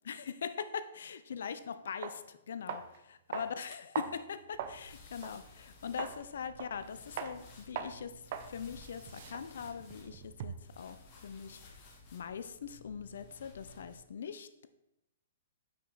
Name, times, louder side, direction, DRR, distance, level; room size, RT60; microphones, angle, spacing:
voice 1, 0.1-8.2 8.5-11.0 11.2-11.7 12.1-14.7, left 7 dB, 70° left, 12 dB, 0.5 m, -42 dB
Walking in High Heels, 1.5-1.6 2.0-2.2 2.7-3.0 3.3-4.8 5.2-5.4 6.0-6.2 6.6-6.9 7.2-7.4 7.8-8.0 8.3-8.5 8.8-10.7, right 8 dB, 50° right, 0.5 m, -41 dB
sound 1, 4.5-14.0, left 3 dB, 40° left, 1.4 m, -55 dB
5.7 x 4.8 x 4.0 m, 0.85 s
hypercardioid pair, 125°, 0 cm